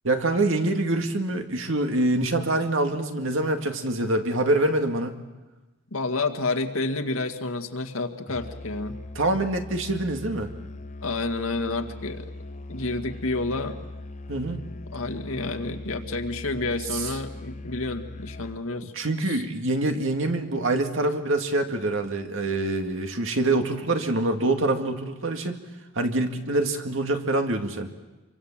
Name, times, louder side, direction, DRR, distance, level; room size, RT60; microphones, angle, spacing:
voice 1, 0.0-5.2 9.2-10.5 14.3-14.6 16.9-17.1 18.8-25.6 26.0-27.9, right 2 dB, 65° right, 5 dB, 2.2 m, -25 dB
voice 2, 5.9-9.0 11.0-12.3 12.7-13.8 14.9-18.9 19.3-19.4, left 3 dB, 85° left, 5 dB, 2.0 m, -29 dB
Musical instrument, 8.3-18.7, left 2 dB, 35° left, 0.8 m, -40 dB
27.0 x 24.0 x 7.5 m, 1.1 s
head